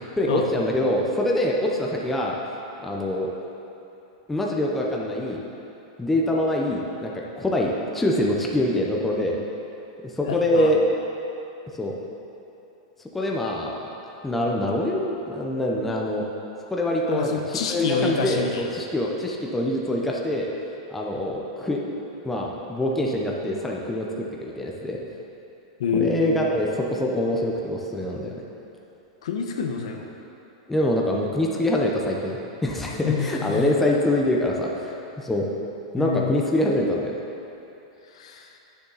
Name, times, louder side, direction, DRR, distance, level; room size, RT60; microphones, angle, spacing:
voice 1, 0.2-2.4 2.8-3.3 4.3-5.4 6.0-9.4 10.2-10.8 11.8-11.9 13.1-13.7 14.2-16.3 16.7-20.5 20.9-21.8 22.2-25.0 25.9-28.3 30.7-35.5 35.9-37.1, left 1 dB, 5° left, -2 dB, 0.7 m, -24 dB
voice 2, 10.3-10.7 17.1-18.6 25.8-26.4 29.2-30.1 33.0-33.7 36.0-36.3 38.2-38.5, left 6 dB, 75° left, 3 dB, 0.9 m, -27 dB
9.3 x 7.1 x 4.0 m, 2.9 s
supercardioid pair, 160°, 3 cm